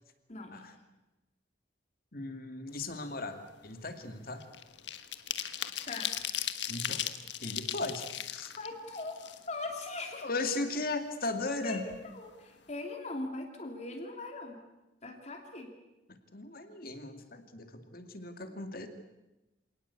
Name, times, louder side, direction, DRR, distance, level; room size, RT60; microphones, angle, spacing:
voice 1, 0.3-0.6 5.9-6.4 8.6-10.3 11.6-14.6 15.0-15.7, left 2 dB, 40° left, 3 dB, 2.9 m, -40 dB
voice 2, 2.1-4.4 6.7-7.0 7.4-8.5 10.2-11.8 16.3-18.9, left 2 dB, 55° left, 7 dB, 2.4 m, -37 dB
sound 1, 2.8-3.0 3.4-9.8 10.2-10.3 10.6-11.6 11.9-12.0 12.3-12.6, left 11 dB, 85° left, 1.4 m, -38 dB
27.0 x 18.5 x 8.4 m, 1.0 s
head